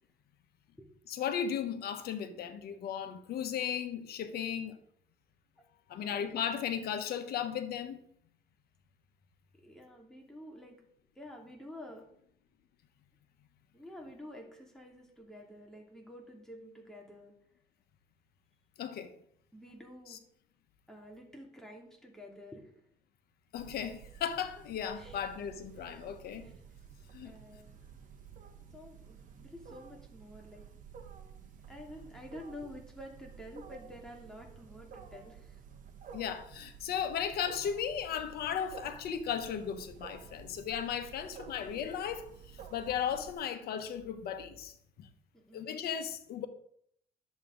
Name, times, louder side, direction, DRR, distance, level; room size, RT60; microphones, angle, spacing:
voice 1, 1.1-4.8 5.9-8.0 18.8-19.1 23.5-26.5 27.1-27.3 36.1-42.3 42.7-45.1 45.5-46.5, left 8 dB, 70° left, 1.2 m, -36 dB
voice 2, 6.0-6.4 9.5-10.8 11.1-12.1 13.7-17.3 19.5-20.2 20.9-22.8 24.9-25.3 26.4-26.6 27.2-27.8 28.7-30.7 31.7-36.1 41.7-41.8 45.3-45.7, left 1 dB, 5° left, 2.5 m, -50 dB
Wild animals, 23.5-43.3, right 7 dB, 50° right, 1.4 m, -52 dB
11.0 x 7.2 x 3.9 m
cardioid pair, 110°, 17 cm